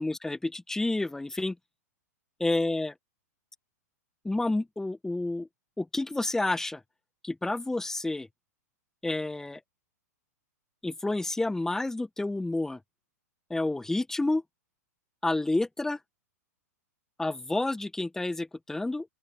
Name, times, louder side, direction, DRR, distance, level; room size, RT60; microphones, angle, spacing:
voice 1, 0.0-1.5 2.4-2.9 4.2-5.5 5.8-6.8 7.2-8.3 9.0-9.6 10.8-12.8 13.5-14.4 15.2-16.0 17.2-19.1, left 2 dB, 5° left, 1.7 m, -29 dB
open air
figure-of-eight pair, 100°, 9 cm